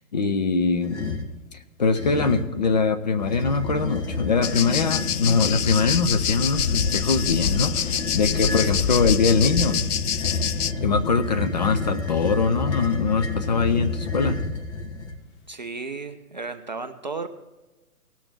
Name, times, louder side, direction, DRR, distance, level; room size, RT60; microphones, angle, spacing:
voice 1, 0.1-1.0 1.8-9.8 10.8-14.4, left 4 dB, 30° left, 8 dB, 0.5 m, -22 dB
sound 1, 0.8-1.3 1.9-2.6 3.2-15.2, left 3 dB, 50° left, 1.7 m, -29 dB
sound 2, 4.4-10.7, left 8 dB, 80° left, 0.6 m, -26 dB
voice 2, 15.5-17.3, right 4 dB, 30° right, 7 dB, 0.4 m, -34 dB
18.0 x 6.9 x 4.5 m, 1.1 s
figure-of-eight pair, 135°, 45 cm